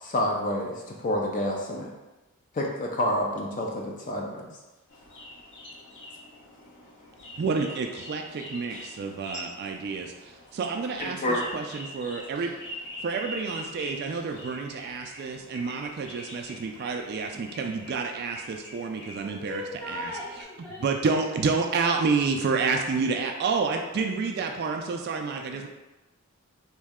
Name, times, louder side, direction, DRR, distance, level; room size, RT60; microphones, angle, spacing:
voice 1, 0.0-1.9 2.5-4.5 11.0-11.5, left 1 dB, 35° left, 0 dB, 0.4 m, -28 dB
sound 1, 4.9-20.4, left 1 dB, 55° left, 0.9 m, -44 dB
voice 2, 7.4-12.5 13.0-20.1 20.8-25.7, right 4 dB, 45° right, 3 dB, 0.3 m, -29 dB
voice 3, 19.2-20.9, left 1 dB, 5° left, -6 dB, 0.9 m, -38 dB
3.1 x 2.7 x 3.6 m, 1.1 s
head